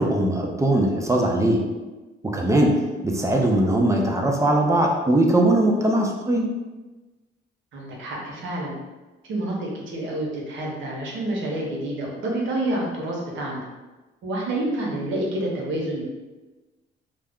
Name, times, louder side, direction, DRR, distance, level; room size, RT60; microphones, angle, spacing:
voice 1, 0.0-1.6 2.3-2.7 3.0-6.5, right 1 dB, 15° right, 0 dB, 0.4 m, -20 dB
voice 2, 7.7-8.8 9.3-13.6 14.2-16.0, right 1 dB, 75° right, -2 dB, 0.8 m, -28 dB
2.3 x 2.1 x 3.5 m, 1.2 s
cardioid pair, 90°, 20 cm